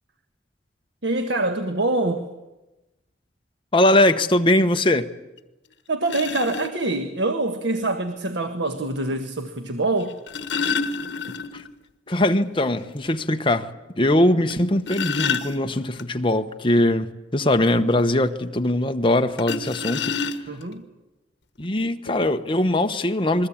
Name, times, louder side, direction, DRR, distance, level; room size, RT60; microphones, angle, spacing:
voice 1, 1.0-2.3 5.9-10.2 20.5-20.8, right 2 dB, 80° right, 1.5 m, -25 dB
voice 2, 3.7-5.1 11.5-11.6 12.1-13.7 13.9-17.1 17.3-20.2 21.6-23.5, left 1 dB, 30° left, 1.1 m, -21 dB
sound 1, 5.4-5.5 6.1-6.7 8.1-8.2 10.0-11.7 12.1-12.2 12.6-12.7 13.2-13.3 14.5-16.0 19.4-20.7 21.6-21.7 22.1-22.3, left 5 dB, 75° left, 1.4 m, -28 dB
28.0 x 21.5 x 8.7 m
head